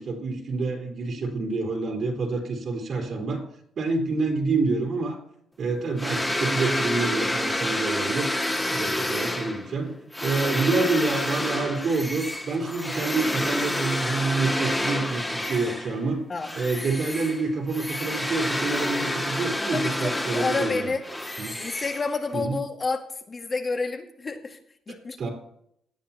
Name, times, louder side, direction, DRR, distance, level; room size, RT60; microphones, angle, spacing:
voice 1, 0.0-3.4 3.8-5.2 5.6-8.3 8.7-9.9 10.2-16.2 16.6-20.9 21.4-21.6 22.3-22.6 24.9-25.3, right 3 dB, 60° right, -1 dB, 3.6 m, -27 dB
sound 1, 6.0-16.0 16.4-22.4, left 1 dB, 10° left, 2.1 m, -29 dB
voice 2, 19.7-21.0 21.6-24.6 24.9-25.3, left 4 dB, 35° left, 4 dB, 2.0 m, -29 dB
17.5 x 10.5 x 2.9 m, 0.71 s
cardioid pair, 90°, 0 cm